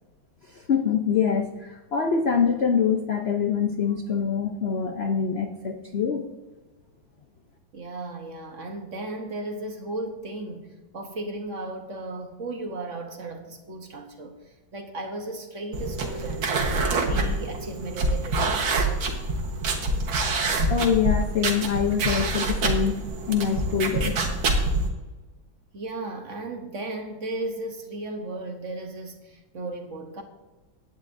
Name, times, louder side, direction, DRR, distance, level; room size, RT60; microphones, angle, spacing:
voice 1, 0.5-6.2 20.7-23.0 23.3-24.2, left 7 dB, 65° left, 0.6 m, -24 dB
voice 2, 7.7-10.7 10.9-16.6 16.9-18.7 25.7-30.2, right 2 dB, 45° right, 1.2 m, -35 dB
sound 1, 15.7-24.9, right 2 dB, 80° right, 2.1 m, -26 dB
16.5 x 9.9 x 2.6 m
omnidirectional pair, 2.1 m